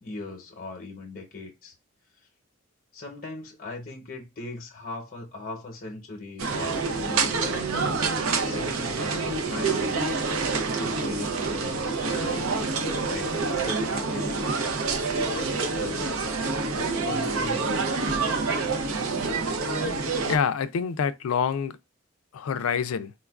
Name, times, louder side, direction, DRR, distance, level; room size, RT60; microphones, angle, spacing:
voice 1, 0.0-1.7 2.9-10.1 10.8-12.6 13.1-14.7 15.2-16.5 17.0-18.2, left 3 dB, 45° left, 0.8 m, -39 dB
sound 1, 6.4-20.4, right 4 dB, 85° right, 0.6 m, -27 dB
voice 2, 20.3-21.8 22.3-23.1, left 6 dB, 85° left, 0.4 m, -26 dB
4.3 x 2.3 x 2.3 m
head